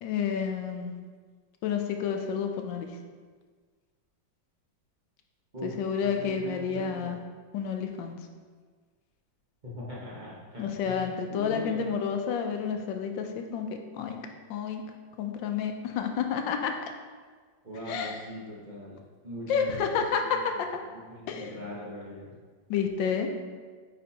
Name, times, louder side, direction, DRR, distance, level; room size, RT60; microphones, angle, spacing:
voice 1, 0.0-1.0 1.6-2.9 5.6-7.2 7.5-8.1 10.6-13.7 13.9-14.2 14.5-14.8 15.2-16.9 17.9-18.2 19.5-20.7 21.3-21.5 22.7-23.3, left 7 dB, 85° left, 5 dB, 1.3 m, -30 dB
voice 2, 6.0-7.1 9.6-11.0 11.3-11.8 17.6-19.0 19.2-19.9 20.2-20.4 21.1-22.3, equal, 30° right, -7 dB, 1.1 m, -40 dB
9.1 x 4.3 x 2.8 m, 1.5 s
omnidirectional pair, 2.0 m